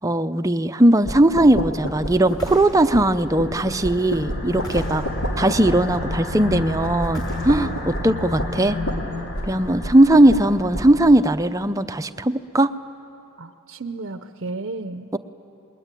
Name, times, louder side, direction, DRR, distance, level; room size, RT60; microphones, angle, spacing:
voice 1, 0.0-5.0 5.4-8.8 9.4-12.7 15.1-15.2, right 1 dB, 15° right, 10 dB, 0.6 m, -18 dB
sound 1, 1.0-11.1, equal, 70° left, 3.0 m, -31 dB
sound 2, 2.2-3.1 4.5-5.3 7.0-7.9, equal, 15° left, 5.2 m, -38 dB
sound 3, 2.6-11.1, left 2 dB, 55° left, 4.7 m, -32 dB
voice 2, 13.4-15.1, right 3 dB, 50° right, 9 dB, 0.7 m, -33 dB
28.5 x 21.5 x 9.1 m, 3.0 s
head